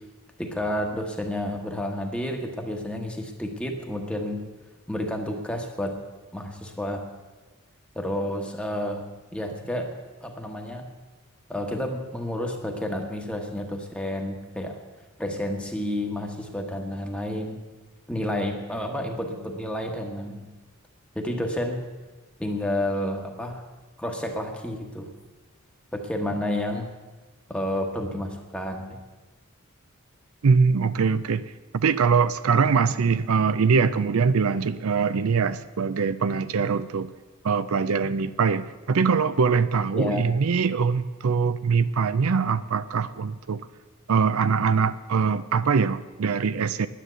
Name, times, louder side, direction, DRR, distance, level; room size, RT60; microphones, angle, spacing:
voice 1, 0.4-4.4 4.9-5.9 6.3-7.0 7.9-9.0 9.3-9.9 10.2-10.9 11.5-14.7 15.2-17.6 18.1-20.5 21.1-21.8 22.4-23.6 24.0-25.1 25.9-26.9 27.5-29.0 39.9-40.3, left 1 dB, 5° left, 2 dB, 1.1 m, -30 dB
voice 2, 30.4-31.4 31.7-37.1 37.4-43.7 44.1-46.9, right 5 dB, 75° right, 14 dB, 0.5 m, -23 dB
10.5 x 10.0 x 8.0 m, 1.2 s
head